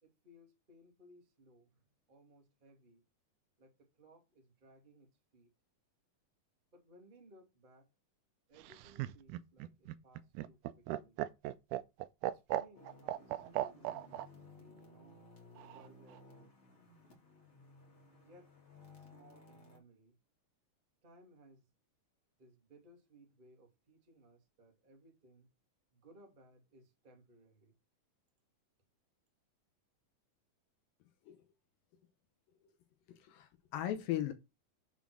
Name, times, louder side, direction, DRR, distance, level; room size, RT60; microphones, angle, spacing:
voice 1, 0.0-1.8 2.1-3.0 3.6-5.5 6.7-7.9 8.5-11.2 12.2-15.3 15.7-16.5 18.2-18.5 18.9-20.2 21.0-21.7 22.4-25.5 25.9-27.7, right 1 dB, 20° right, 1.3 m, -62 dB
Laughter, 8.6-14.3 15.6-16.2, right 14 dB, 85° right, 1.8 m, -38 dB
sound 1, 12.7-19.8, left 3 dB, 30° left, 1.3 m, -59 dB
voice 2, 33.1-34.3, left 12 dB, 80° left, 2.5 m, -38 dB
7.2 x 3.8 x 6.1 m
omnidirectional pair, 4.1 m